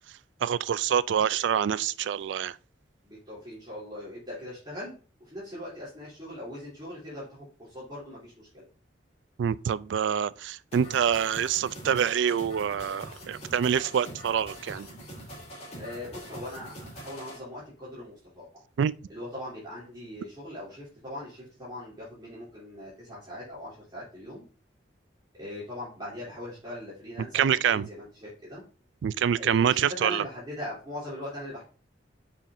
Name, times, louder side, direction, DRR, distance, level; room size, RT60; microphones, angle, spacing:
voice 1, 0.4-2.6 9.4-14.9 18.8-18.9 27.3-27.9 29.0-30.2, right 8 dB, 80° right, 0.3 m, -26 dB
voice 2, 3.0-8.6 15.8-18.6 19.1-24.4 25.3-28.6 29.4-31.6, left 1 dB, 25° right, 3.1 m, -40 dB
sound 1, 10.7-17.4, equal, 35° left, 2.9 m, -43 dB
7.2 x 5.6 x 2.7 m
head